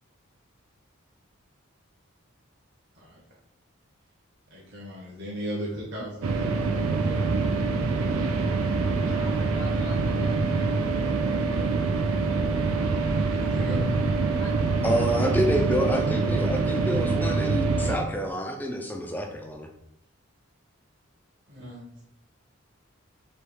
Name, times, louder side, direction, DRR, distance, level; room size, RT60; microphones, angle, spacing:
voice 1, 4.5-7.5 11.3-13.8 21.5-21.9, equal, 50° right, -5 dB, 1.3 m, -38 dB
sound 1, 6.2-18.0, right 3 dB, 85° right, 0.5 m, -25 dB
voice 2, 9.1-10.7 14.3-15.1, left 2 dB, 60° left, 1 dB, 0.9 m, -43 dB
voice 3, 14.8-19.7, equal, 10° left, 2 dB, 0.4 m, -28 dB
3.4 x 3.0 x 4.7 m, 0.78 s
head